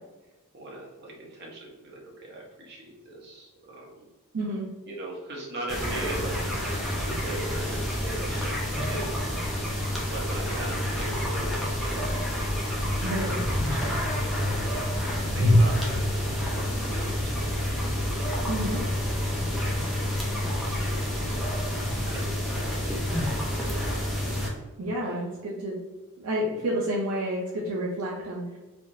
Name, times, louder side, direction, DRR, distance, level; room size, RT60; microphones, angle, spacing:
voice 1, 0.5-4.1 4.9-9.5 10.0-17.3 17.9-18.3 19.5-20.1 20.5-22.9 23.2-23.7 24.9-25.2, right 2 dB, 50° right, -2 dB, 0.9 m, -40 dB
voice 2, 4.3-4.7 13.0-13.4 18.5-18.8 24.8-25.8 26.2-28.6, right 1 dB, 70° right, -4 dB, 0.5 m, -30 dB
sound 1, 5.7-24.5, left 1 dB, ahead, 0.5 m, -28 dB
3.4 x 2.3 x 2.6 m, 1.1 s
head